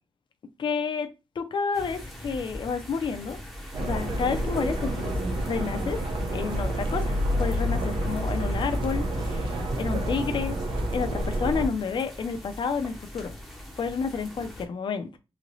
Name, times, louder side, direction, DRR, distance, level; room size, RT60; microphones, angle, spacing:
voice 1, 0.6-1.1 1.4-3.4 3.8-5.2 5.4-6.0 6.3-10.6 10.9-13.3 13.8-15.2, left 5 dB, 55° left, 0.5 m, -30 dB
sound 1, 1.7-14.7, left 1 dB, ahead, 0.7 m, -42 dB
sound 2, 3.7-11.7, equal, 55° right, 0.6 m, -28 dB
3.1 x 2.8 x 2.5 m
wide cardioid pair, 150°, 10 cm